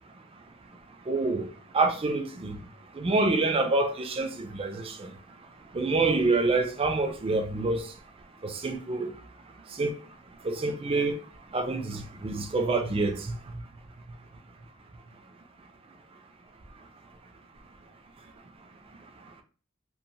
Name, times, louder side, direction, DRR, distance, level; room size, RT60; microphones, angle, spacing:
voice 1, 1.1-1.5 1.7-2.5 3.0-5.1 5.7-7.8 8.4-9.1 9.8-9.9 10.4-11.1 11.5-13.2, right 3 dB, 30° right, 0.4 m, -26 dB
3.0 x 2.1 x 2.6 m
head